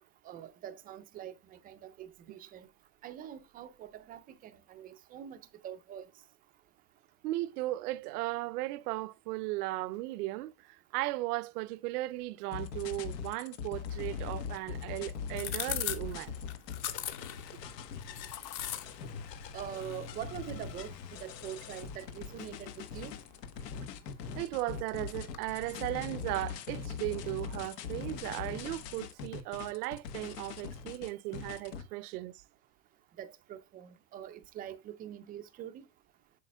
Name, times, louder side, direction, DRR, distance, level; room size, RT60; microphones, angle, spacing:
voice 1, 0.2-2.7 3.0-5.4 5.6-6.1 19.5-23.1 33.2-35.8, right 10 dB, 20° right, 0.4 m, -44 dB
voice 2, 7.2-16.3 24.3-32.4, right 18 dB, 70° right, 0.6 m, -36 dB
sound 1, 12.5-31.8, left 7 dB, 80° left, 1.3 m, -41 dB
sound 2, 13.9-25.5, left 11 dB, 40° left, 1.2 m, -44 dB
8.4 x 6.5 x 2.2 m
supercardioid pair, 130°, 48 cm